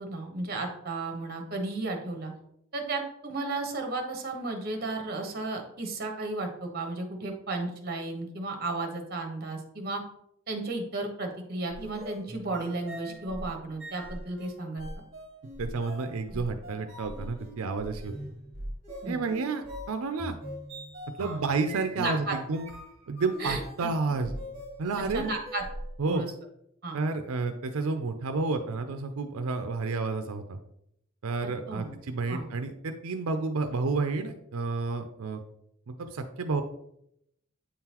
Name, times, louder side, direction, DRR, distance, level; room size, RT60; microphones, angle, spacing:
voice 1, 0.0-2.3 2.7-10.0 10.5-14.9 19.0-19.2 21.2-21.4 22.0-22.4 23.4-23.9 25.1-25.6 26.1-26.3 26.8-27.0 31.7-31.9 32.3-32.4, right 2 dB, 45° right, 4 dB, 1.0 m, -34 dB
sound 1, 11.7-26.0, equal, 30° right, 1.8 m, -42 dB
voice 2, 15.6-18.1 19.0-20.4 21.2-22.7 23.1-24.3 24.8-25.3 26.0-26.2 26.9-30.6 31.2-35.4 35.9-36.6, right 3 dB, 90° right, 7 dB, 0.5 m, -30 dB
8.6 x 3.8 x 2.9 m, 0.76 s
head